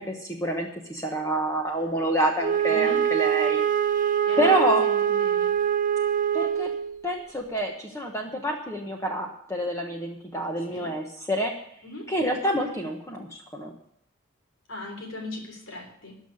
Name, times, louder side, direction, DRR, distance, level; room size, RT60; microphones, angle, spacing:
voice 1, 0.0-3.6 4.0-4.8 6.3-6.7 7.0-11.5 12.1-13.7, right 1 dB, 15° left, 1 dB, 1.1 m, -27 dB
Wind instrument woodwind instrument, 2.4-7.0, right 9 dB, 40° right, 0.6 m, -24 dB
voice 2, 2.7-3.1 4.2-5.5 10.7-11.0 11.8-12.1 14.7-16.2, left 1 dB, 70° left, 2 dB, 3.4 m, -38 dB
13.0 x 5.7 x 9.5 m, 0.69 s
head